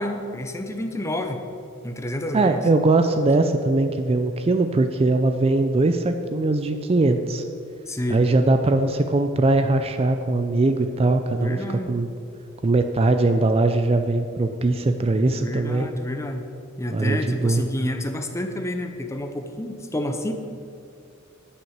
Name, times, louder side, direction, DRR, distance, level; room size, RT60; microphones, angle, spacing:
voice 1, 0.0-1.4 1.8-2.6 7.9-8.2 11.3-11.9 15.4-16.5 16.8-20.3, left 1 dB, 15° left, 5 dB, 0.7 m, -29 dB
voice 2, 2.3-7.4 8.1-12.1 12.6-15.9 16.9-17.6, right 2 dB, 30° right, 7 dB, 0.4 m, -21 dB
9.7 x 6.1 x 7.3 m, 2.5 s
head